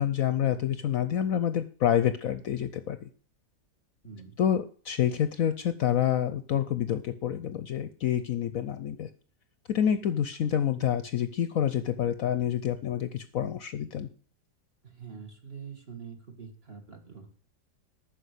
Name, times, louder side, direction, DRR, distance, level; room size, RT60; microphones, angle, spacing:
voice 1, 0.0-3.1 4.4-9.1 9.7-14.1, left 10 dB, 65° left, 12 dB, 0.9 m, -28 dB
voice 2, 4.0-4.4 14.8-17.4, right 6 dB, 35° right, 4 dB, 1.9 m, -45 dB
9.7 x 6.2 x 8.1 m, 0.42 s
omnidirectional pair, 1.8 m